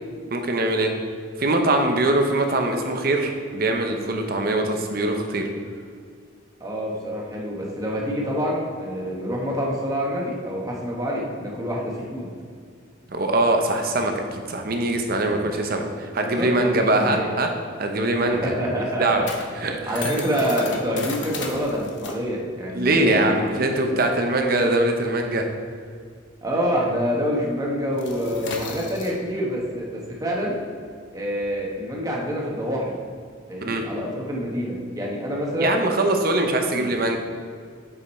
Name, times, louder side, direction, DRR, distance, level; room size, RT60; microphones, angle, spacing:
voice 1, 0.3-0.9 1.4-5.5 13.1-17.5 17.8-18.5 19.0-19.3 19.5-20.0 22.7-25.5 33.6-33.8 35.6-37.2, right 2 dB, 50° right, 4 dB, 0.7 m, -22 dB
voice 2, 6.6-12.3 15.3-15.5 16.2-17.3 18.3-19.2 19.9-23.4 26.4-30.6 31.1-33.0 33.5-35.8 36.3-37.0, equal, 20° right, -2 dB, 1.1 m, -27 dB
sound 1, 17.7-26.7 27.0-27.2 27.5-33.3, left 4 dB, 65° left, 0.9 m, -37 dB
7.0 x 5.1 x 4.3 m, 2.1 s
head